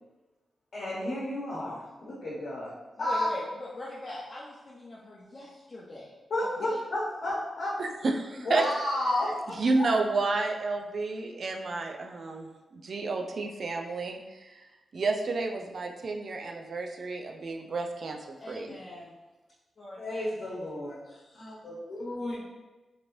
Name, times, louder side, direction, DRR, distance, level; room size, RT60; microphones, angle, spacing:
voice 1, 0.7-2.7 3.0-3.3 6.3-7.7 8.4-9.9 20.0-22.4, left 1 dB, 65° left, 0.9 m, -32 dB
voice 2, 3.0-6.1 6.6-6.8 18.4-19.2 19.8-20.3, left 1 dB, 45° left, 0.6 m, -42 dB
voice 3, 7.8-8.6 9.6-12.5 12.7-14.5 14.9-18.2 18.5-18.7, right 3 dB, 55° right, 0.3 m, -30 dB
2.9 x 2.5 x 3.0 m
cardioid pair, 95°, 0 cm